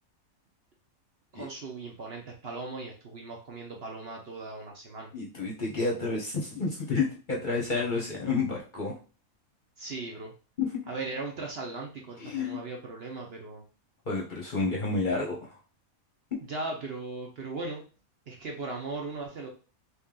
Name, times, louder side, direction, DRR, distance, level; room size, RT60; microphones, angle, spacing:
voice 1, 1.3-5.1 9.8-10.3 10.9-13.6 16.5-17.8 18.3-19.5, right 3 dB, 55° right, 1 dB, 0.8 m, -38 dB
voice 2, 5.1-8.9 10.6-10.8 12.2-12.6 14.1-15.6, left 4 dB, 45° left, -1 dB, 0.8 m, -30 dB
3.3 x 2.8 x 3.7 m, 0.35 s
omnidirectional pair, 1.5 m